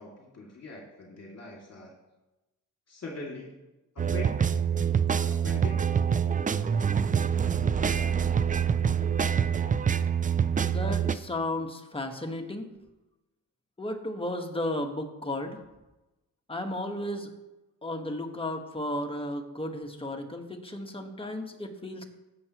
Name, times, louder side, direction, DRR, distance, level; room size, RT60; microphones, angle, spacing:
voice 1, 0.0-2.0 2.9-3.6 3.9-4.4 5.3-5.8, left 3 dB, 45° left, -2 dB, 2.4 m, -42 dB
sound 1, 4.0-11.1, right 7 dB, 25° right, 0.4 m, -26 dB
voice 2, 10.6-12.7 13.8-15.6 16.5-17.3 17.8-22.0, left 1 dB, 15° left, 4 dB, 1.4 m, -34 dB
15.5 x 7.1 x 3.0 m, 1.0 s
cardioid pair, 80°, 35 cm